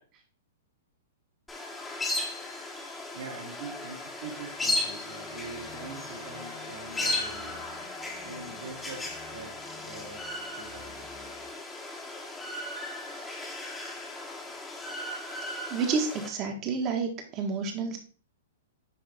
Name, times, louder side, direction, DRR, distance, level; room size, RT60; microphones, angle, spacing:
sound 1, 1.5-16.3, left 2 dB, 10° left, 1.3 m, -36 dB
voice 1, 3.1-7.6 8.2-10.2 10.5-11.1, right 4 dB, 70° right, -2 dB, 2.9 m, -44 dB
sound 2, 4.2-11.5, left 3 dB, 90° left, 2.7 m, -50 dB
voice 2, 15.7-18.0, right 5 dB, 30° right, 4 dB, 1.5 m, -30 dB
10.0 x 3.4 x 3.5 m, 0.40 s
hypercardioid pair, 140°, 0 cm